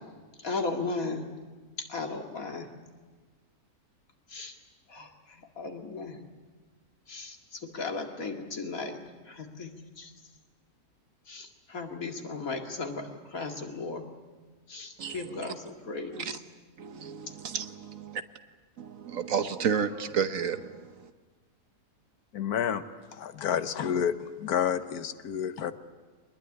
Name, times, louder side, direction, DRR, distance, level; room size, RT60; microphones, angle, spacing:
voice 1, 0.4-1.2 1.9-2.7 4.3-4.5 4.9-6.2 7.1-9.0 9.3-9.7 10.0-10.1 11.3-14.0 14.7-16.3, left 3 dB, 65° left, 2.7 m, -36 dB
voice 2, 15.0-15.5 16.1-16.4 16.8-18.2 18.8-21.1, right 7 dB, 65° right, 1.4 m, -32 dB
voice 3, 22.3-22.8 23.1-25.7, left 8 dB, 85° left, 1.5 m, -29 dB
23.5 x 20.5 x 9.8 m
omnidirectional pair, 1.6 m